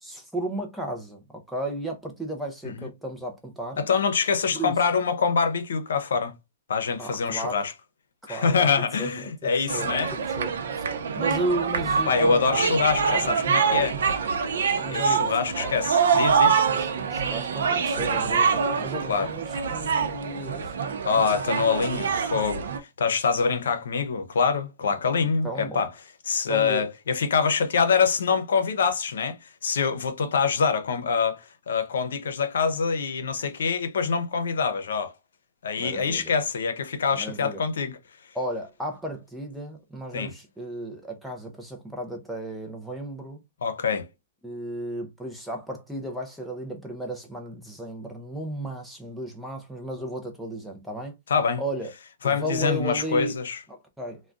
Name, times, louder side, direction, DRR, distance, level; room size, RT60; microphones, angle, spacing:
voice 1, 0.0-3.8 4.5-4.7 7.0-7.6 8.2-8.7 9.0-9.1 9.4-10.6 11.2-13.3 14.5-15.8 16.7-20.7 25.4-25.8 26.5-26.9 35.8-36.3 37.1-37.6 38.3-43.4 44.4-51.2 51.6-51.9 52.2-53.4 53.7-54.2, right 1 dB, ahead, 0.5 m, -34 dB
voice 2, 3.8-6.3 6.7-7.7 8.3-10.1 12.1-14.0 14.9-16.7 19.1-19.3 21.0-25.9 26.3-35.1 35.6-38.0 40.1-40.3 43.6-44.1 51.3-51.6 52.2-53.6, left 5 dB, 85° left, 0.7 m, -25 dB
sound 1, 9.7-22.8, right 6 dB, 70° right, 0.6 m, -25 dB
3.5 x 2.2 x 2.4 m
hypercardioid pair, 170°, 0 cm